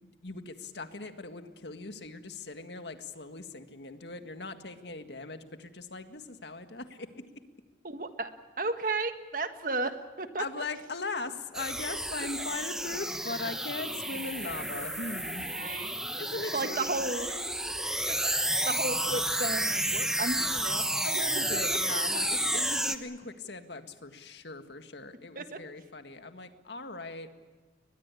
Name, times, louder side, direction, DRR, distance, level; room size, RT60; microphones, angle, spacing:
voice 1, 0.0-7.1 10.4-15.5 16.2-17.4 21.0-27.3, left 3 dB, 80° left, 8 dB, 1.9 m, -40 dB
voice 2, 7.8-10.6 15.5-16.0 16.5-17.4 18.1-21.2 21.7-22.2 25.3-25.6, right 3 dB, 50° right, 8 dB, 1.6 m, -34 dB
sound 1, 11.5-23.0, right 1 dB, 5° right, 0.9 m, -31 dB
22.0 x 21.0 x 8.5 m, 1.4 s
head